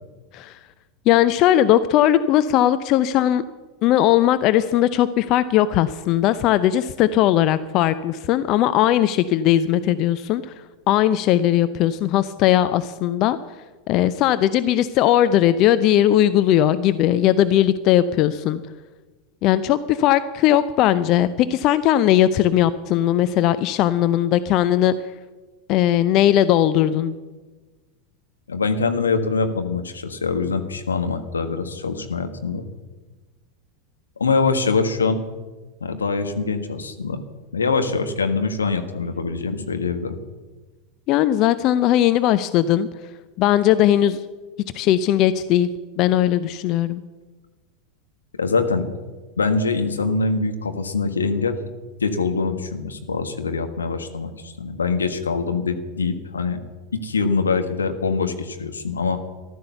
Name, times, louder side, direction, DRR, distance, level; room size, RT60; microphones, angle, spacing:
voice 1, 1.1-3.4 3.8-10.5 10.9-13.4 13.9-18.6 19.4-24.9 25.7-27.1 41.1-42.9 43.4-44.2 44.7-45.7 46.0-47.0, left 12 dB, 45° left, 13 dB, 0.6 m, -18 dB
voice 2, 28.5-32.6 34.2-35.2 35.8-37.2 37.5-40.1 48.4-48.9 49.4-51.6 52.0-56.6 56.9-59.2, left 4 dB, 80° left, 7 dB, 1.4 m, -23 dB
14.5 x 12.5 x 6.8 m, 1.3 s
figure-of-eight pair, 85°, 0 cm